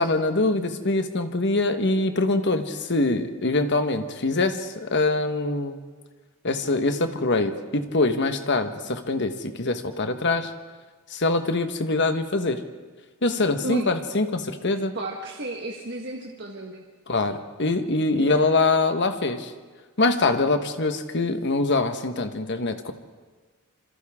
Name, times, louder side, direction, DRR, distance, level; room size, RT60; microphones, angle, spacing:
voice 1, 0.0-5.8 6.4-10.5 11.1-12.6 13.2-15.0 17.1-19.5 20.0-22.9, left 2 dB, 55° left, 7 dB, 1.3 m, -24 dB
voice 2, 14.6-16.8 18.1-18.4, right 2 dB, 50° right, 0 dB, 1.5 m, -34 dB
26.5 x 26.5 x 3.7 m, 1.4 s
head